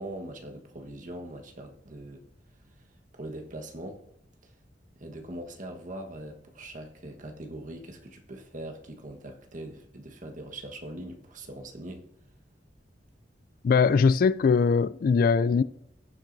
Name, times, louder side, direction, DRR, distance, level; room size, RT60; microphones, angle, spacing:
voice 1, 0.0-2.2 3.1-4.0 4.4-4.5 5.0-12.1, right 1 dB, 45° right, 1.3 m, -41 dB
voice 2, 13.6-15.6, left 5 dB, 55° left, 0.3 m, -21 dB
16.5 x 7.4 x 2.7 m
head